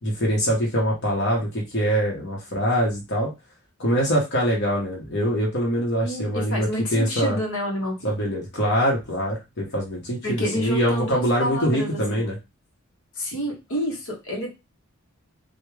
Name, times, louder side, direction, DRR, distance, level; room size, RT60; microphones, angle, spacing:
voice 1, 0.0-3.3 3.8-7.4 8.0-12.4, equal, 50° left, -2 dB, 1.1 m, -24 dB
voice 2, 6.0-8.1 10.2-12.2 13.2-14.5, equal, 65° left, 0 dB, 1.2 m, -29 dB
3.5 x 2.4 x 3.2 m, 0.24 s
head